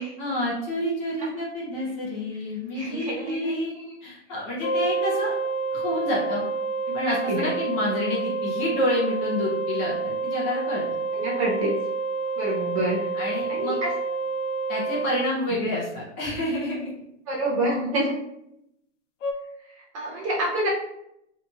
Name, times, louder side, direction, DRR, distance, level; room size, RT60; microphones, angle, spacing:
voice 1, 0.2-3.7 4.0-5.3 5.7-6.4 6.9-10.8 13.1-13.8 14.7-16.9, left 1 dB, 20° left, -6 dB, 0.5 m, -28 dB
voice 2, 2.7-3.8 6.9-7.5 11.1-11.7 12.4-13.0 13.5-13.9 17.3-18.1 19.7-20.7, right 1 dB, 30° right, -4 dB, 0.5 m, -28 dB
sound 1, 4.6-15.3 19.2-19.3, right 4 dB, 90° left, 0.6 m, -28 dB
2.8 x 2.8 x 2.3 m, 0.80 s
hypercardioid pair, 150°, 36 cm